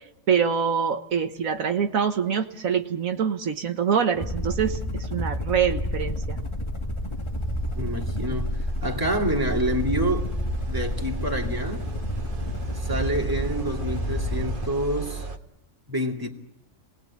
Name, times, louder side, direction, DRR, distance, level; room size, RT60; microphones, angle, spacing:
voice 1, 0.3-4.8 5.1-6.4, right 7 dB, 80° right, 1.6 m, -25 dB
sound 1, 4.1-14.8, left 1 dB, 20° left, 1.6 m, -29 dB
sound 2, 7.3-15.4, right 5 dB, 40° right, 1.5 m, -37 dB
voice 2, 7.8-10.3 10.7-11.9 12.8-15.3 15.9-16.3, right 1 dB, 15° right, 2.4 m, -28 dB
27.5 x 19.5 x 8.4 m
omnidirectional pair, 1.4 m